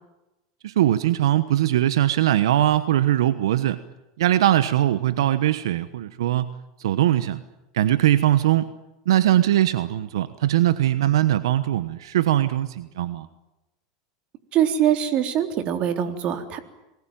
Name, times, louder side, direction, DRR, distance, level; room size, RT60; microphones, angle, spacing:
voice 1, 0.6-3.8 4.2-6.5 6.8-7.4 7.7-8.7 9.1-13.3, right 12 dB, 85° right, 14 dB, 1.1 m, -21 dB
voice 2, 14.5-16.6, right 10 dB, 45° right, 8 dB, 3.6 m, -23 dB
28.0 x 20.5 x 9.2 m, 0.99 s
supercardioid pair, 120°, 2 cm